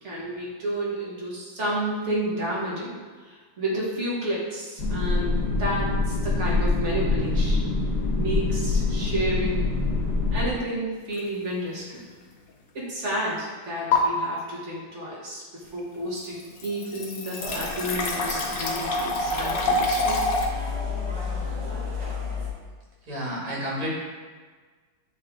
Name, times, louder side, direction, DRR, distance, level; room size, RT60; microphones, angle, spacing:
voice 1, 0.0-3.0 3.2-7.7 8.1-9.7 10.3-12.0 12.7-20.2, right 1 dB, 40° right, -5 dB, 1.3 m, -31 dB
sound 1, 4.8-10.5, left 3 dB, 50° left, 1.6 m, -25 dB
sound 2, 11.1-11.4 11.9-12.0 13.9-14.0 15.8-15.9 16.2-20.5, left 3 dB, 70° left, 0.8 m, -26 dB
sound 3, 17.4-22.5, left 4 dB, 55° right, 1.9 m, -32 dB
voice 2, 23.0-23.9, equal, 80° right, -6 dB, 2.7 m, -30 dB
8.4 x 3.4 x 3.5 m, 1.5 s
omnidirectional pair, 2.4 m